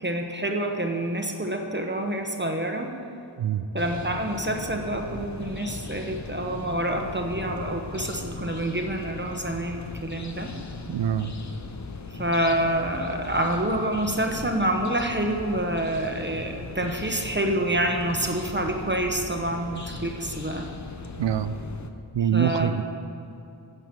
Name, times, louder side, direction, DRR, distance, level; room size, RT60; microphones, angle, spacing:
voice 1, 0.0-2.9 3.7-10.5 12.1-20.7 22.3-22.8, right 1 dB, 25° right, 3 dB, 1.0 m, -27 dB
voice 2, 3.4-3.7 10.9-11.3 21.2-21.6 22.1-22.8, right 9 dB, 70° right, 12 dB, 0.6 m, -25 dB
sound 1, 3.8-21.9, left 3 dB, 40° left, 0.8 m, -38 dB
9.5 x 7.0 x 6.0 m, 2.8 s
cardioid pair, 40°, 46 cm